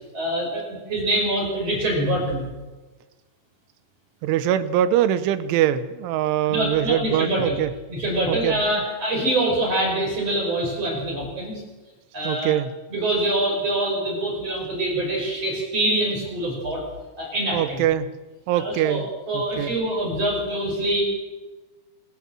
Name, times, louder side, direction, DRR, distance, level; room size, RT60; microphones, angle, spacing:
voice 1, 0.1-2.5 6.5-7.6 7.9-11.6 12.1-12.5 12.9-16.8 17.2-17.8 18.5-21.0, right 1 dB, 30° right, 0 dB, 6.4 m, -25 dB
voice 2, 4.2-7.7 8.3-8.8 12.2-12.7 17.5-18.1 18.5-19.1 19.3-19.7, right 11 dB, 80° right, 13 dB, 3.4 m, -23 dB
26.5 x 18.5 x 7.6 m, 1.2 s
omnidirectional pair, 5.7 m